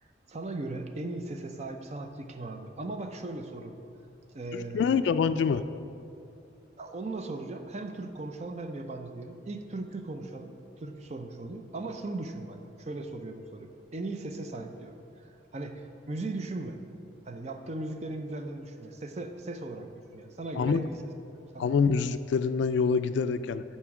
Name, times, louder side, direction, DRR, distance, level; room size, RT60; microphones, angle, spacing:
voice 1, 0.3-3.8 4.3-5.0 5.3-5.4 6.8-15.0 15.2-16.8 17.3-21.1 21.5-21.7, right 2 dB, 35° right, 6 dB, 0.5 m, -38 dB
voice 2, 4.5-5.6 20.6-20.9 21.6-23.6, left 5 dB, 75° left, 12 dB, 0.3 m, -26 dB
12.0 x 4.3 x 4.8 m, 2.6 s
head